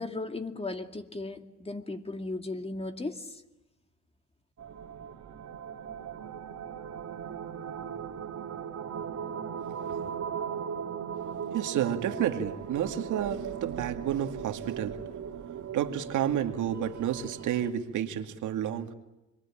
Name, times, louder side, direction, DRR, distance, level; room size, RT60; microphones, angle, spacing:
voice 1, 0.0-3.3, left 2 dB, 20° left, 2.5 m, -36 dB
sound 1, 4.6-17.7, right 7 dB, 60° right, 2.7 m, -38 dB
voice 2, 11.5-15.0 15.7-18.9, right 10 dB, 80° right, 2.3 m, -30 dB
28.5 x 22.5 x 8.8 m
cardioid pair, 90°, 30 cm